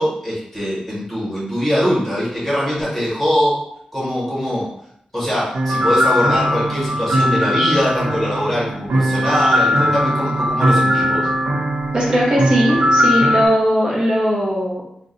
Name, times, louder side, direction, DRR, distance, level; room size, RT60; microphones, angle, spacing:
voice 1, 0.0-3.6 3.9-4.7 5.1-11.3, equal, 5° left, -7 dB, 1.2 m, -22 dB
sound 1, 5.5-13.5, equal, 80° right, 0.6 m, -19 dB
voice 2, 11.9-14.8, equal, 35° right, -5 dB, 0.8 m, -18 dB
2.5 x 2.2 x 3.8 m, 0.72 s
wide cardioid pair, 175°, 3 cm